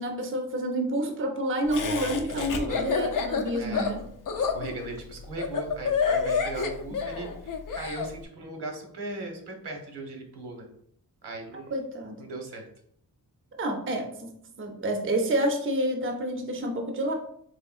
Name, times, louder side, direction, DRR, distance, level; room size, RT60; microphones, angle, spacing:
voice 1, 0.0-4.0 11.5-12.2 13.6-14.3 14.6-17.1, right 1 dB, 30° right, 3 dB, 0.5 m, -29 dB
Laughter, 1.7-8.1, left 5 dB, 55° left, 0.5 m, -28 dB
voice 2, 2.2-3.0 3.6-3.9 4.4-10.7 11.2-11.7 12.2-12.7, right 2 dB, 85° right, 1 dB, 1.0 m, -38 dB
3.6 x 3.2 x 2.4 m, 0.66 s
wide cardioid pair, 120°, 39 cm